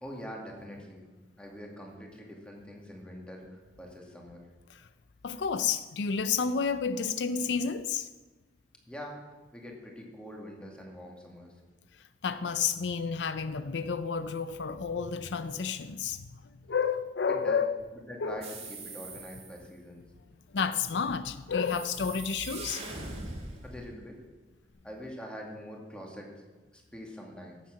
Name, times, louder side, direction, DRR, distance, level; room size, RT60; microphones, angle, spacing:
voice 1, 0.0-1.1 1.4-4.4 8.9-9.2 9.5-11.5 17.3-17.6 18.1-20.0 23.6-24.2 24.8-26.3 26.7-27.6, equal, 5° left, 2.2 m, -44 dB
voice 2, 5.2-8.1 12.2-16.3 16.7-17.8 18.2-18.4 20.5-22.9, left 6 dB, 75° left, 0.5 m, -30 dB
sound 1, 18.4-19.6 21.6-24.0, right 3 dB, 35° right, 2.3 m, -42 dB
11.5 x 7.4 x 7.5 m
head